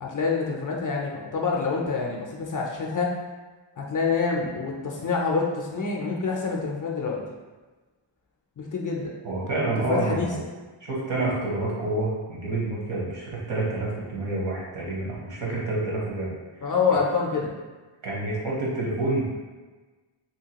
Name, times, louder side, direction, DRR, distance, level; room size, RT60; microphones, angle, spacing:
voice 1, 0.0-3.1 3.8-7.2 8.6-9.1 9.8-10.5 16.6-17.5, left 4 dB, 45° left, -1 dB, 0.4 m, -26 dB
voice 2, 9.2-10.4 10.8-16.3 16.6-17.0 18.0-19.4, right 2 dB, 65° right, -5 dB, 1.0 m, -28 dB
2.8 x 2.3 x 2.8 m, 1.3 s
wide cardioid pair, 90°, 48 cm